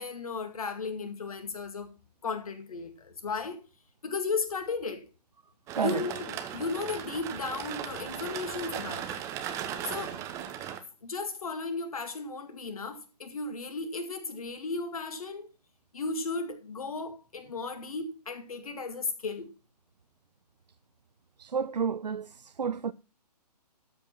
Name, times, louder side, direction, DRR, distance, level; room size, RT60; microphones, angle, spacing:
voice 1, 0.0-1.9 2.2-3.6 4.0-5.0 5.8-9.2 9.9-10.2 11.0-15.5 15.9-19.5, left 4 dB, 60° left, 2.1 m, -35 dB
sound 1, 5.7-10.8, right 10 dB, 15° right, 0.8 m, -37 dB
voice 2, 5.7-6.1 21.4-22.9, right 6 dB, 80° right, 0.5 m, -31 dB
13.0 x 5.3 x 5.7 m
figure-of-eight pair, 135°, 21 cm